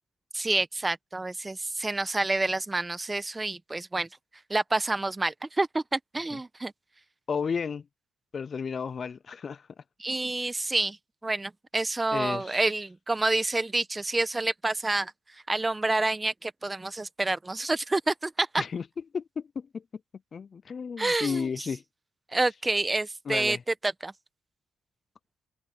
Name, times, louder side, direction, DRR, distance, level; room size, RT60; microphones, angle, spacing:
voice 1, 0.3-4.1 4.5-6.7 10.0-11.0 11.2-18.6 21.0-21.5 22.3-23.6 23.8-24.1, right 2 dB, 20° right, 1.0 m, -28 dB
voice 2, 7.3-7.9 8.3-9.7 12.1-12.6 18.6-18.8 19.1-19.8 20.3-21.8 23.3-23.6, left 6 dB, 45° left, 0.4 m, -33 dB
cardioid pair, 90°, 0 cm